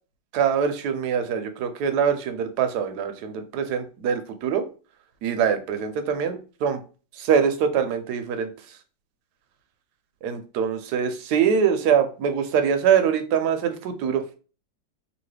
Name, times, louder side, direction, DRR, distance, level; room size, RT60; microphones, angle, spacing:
voice 1, 0.3-4.6 5.2-6.8 7.2-8.5 10.2-14.4, right 7 dB, 70° right, 8 dB, 1.0 m, -23 dB
3.0 x 2.7 x 3.2 m, 0.36 s
omnidirectional pair, 2.0 m